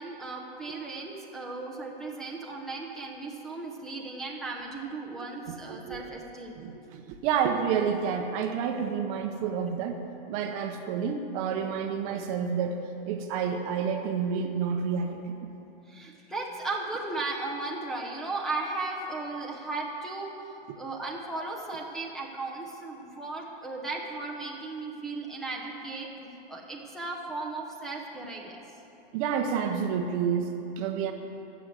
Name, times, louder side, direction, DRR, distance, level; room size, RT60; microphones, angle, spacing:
voice 1, 0.0-6.6 15.9-28.5, right 3 dB, ahead, -5 dB, 0.9 m, -36 dB
voice 2, 5.7-6.0 6.6-10.0 10.3-12.8 13.1-15.5 20.7-20.8 29.1-31.1, right 7 dB, 35° right, 5 dB, 0.9 m, -29 dB
13.5 x 7.0 x 7.8 m, 2.8 s
supercardioid pair, 155°, 30 cm